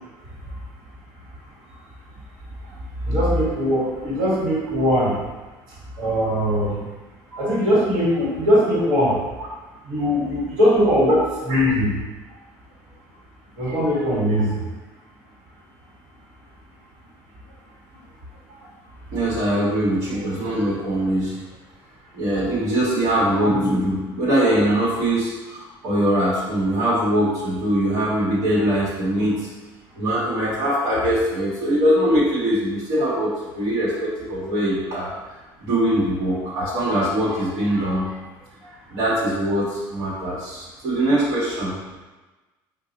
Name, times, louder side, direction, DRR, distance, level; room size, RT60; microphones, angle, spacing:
voice 1, 3.0-5.1 6.0-6.8 7.4-9.1 9.9-11.9 13.6-14.6, equal, 60° right, -6 dB, 1.4 m, -20 dB
voice 2, 19.1-21.4 22.1-29.5 29.9-35.1 35.6-38.2 38.6-41.7, right 1 dB, 80° right, -9 dB, 1.2 m, -22 dB
3.9 x 2.3 x 2.8 m, 1.2 s
cardioid pair, 130°, 9 cm